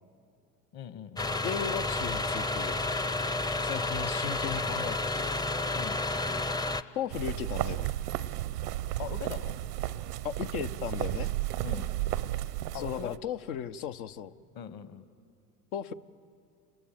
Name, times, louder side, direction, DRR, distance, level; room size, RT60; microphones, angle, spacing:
voice 1, 0.7-1.3 5.7-6.0 9.0-9.6 11.6-11.9 12.7-13.2 14.5-15.0, left 9 dB, 50° left, 13 dB, 1.4 m, -41 dB
sound 1, 1.2-6.8, left 2 dB, 10° left, 0.5 m, -31 dB
voice 2, 1.4-2.8 3.6-5.4 7.0-7.9 10.2-11.3 12.7-14.3 15.7-15.9, left 8 dB, 80° left, 10 dB, 0.8 m, -36 dB
sound 2, 7.1-13.2, right 14 dB, 85° right, 0.7 m, -33 dB
29.0 x 20.5 x 7.6 m, 2.4 s
hypercardioid pair, 75°, 45 cm